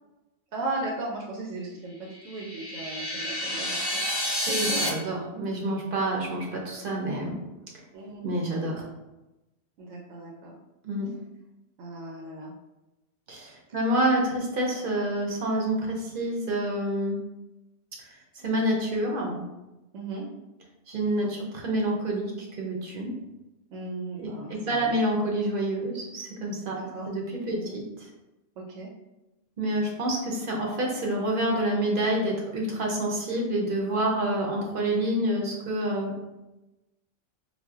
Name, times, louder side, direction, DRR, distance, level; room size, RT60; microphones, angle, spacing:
voice 1, 0.5-4.0 4.5-4.8 7.9-8.2 9.8-10.6 11.8-12.5 19.9-20.2 23.7-25.0 26.7-27.1 27.5-27.8 28.6-28.9, right 2 dB, 90° right, -1 dB, 0.9 m, -36 dB
sound 1, 2.1-4.9, equal, 40° left, 0.3 m, -29 dB
voice 2, 4.3-7.4 8.2-8.8 10.8-11.1 13.3-17.2 18.4-19.4 20.9-23.1 24.2-26.8 27.1-27.8 29.6-36.1, right 1 dB, 55° right, -1 dB, 0.7 m, -28 dB
4.0 x 2.1 x 2.3 m, 1.0 s
omnidirectional pair, 1.2 m